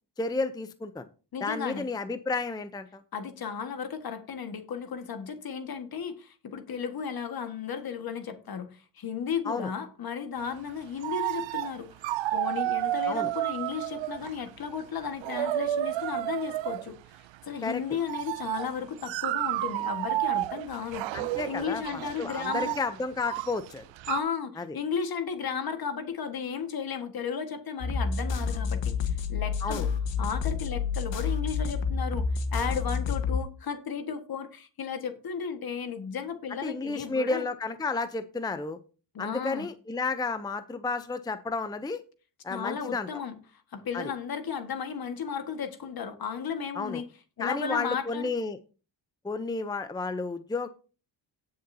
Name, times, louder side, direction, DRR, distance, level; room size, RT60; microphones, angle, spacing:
voice 1, 0.2-1.1 1.4-3.0 9.5-9.7 13.1-13.3 17.6-17.8 21.1-23.8 24.6-24.8 29.6-29.9 36.5-38.8 39.2-42.0 42.4-43.2 43.9-44.1 46.7-47.0 47.4-48.6 49.2-50.7, left 3 dB, 10° left, 0.6 m, -32 dB
voice 2, 1.3-1.9 3.1-17.0 17.5-22.7 24.1-29.9 30.2-37.5 39.1-39.7 42.5-47.0 47.4-48.3, left 6 dB, 55° left, 1.6 m, -34 dB
sound 1, 10.7-10.8 11.0-11.8 12.0-14.5 15.0-16.9 18.0-24.2, right 15 dB, 90° right, 0.6 m, -31 dB
sound 2, 27.8-33.4, left 5 dB, 85° left, 1.4 m, -29 dB
17.5 x 6.7 x 2.7 m
cardioid pair, 110°, 44 cm